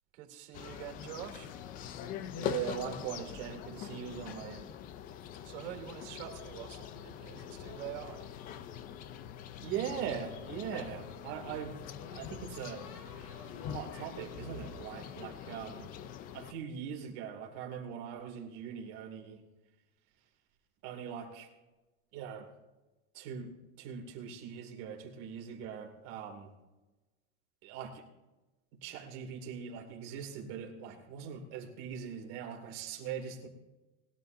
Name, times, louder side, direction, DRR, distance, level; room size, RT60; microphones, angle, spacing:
voice 1, 0.1-1.5 5.4-8.2, right 11 dB, 70° right, 2 dB, 3.0 m, -45 dB
sound 1, 0.5-16.5, left 9 dB, 25° left, 0.4 m, -43 dB
voice 2, 2.3-4.7 9.6-11.7 12.1-12.9 13.6-15.9 16.3-19.4 20.8-21.5 22.1-22.5 23.1-26.5 27.6-28.0 28.8-33.5, right 8 dB, 50° right, 2 dB, 2.4 m, -41 dB
sound 2, 10.4-11.2 12.5-16.2, left 3 dB, 75° left, 5.3 m, -53 dB
20.0 x 12.0 x 2.6 m, 1.1 s
supercardioid pair, 150°, 35 cm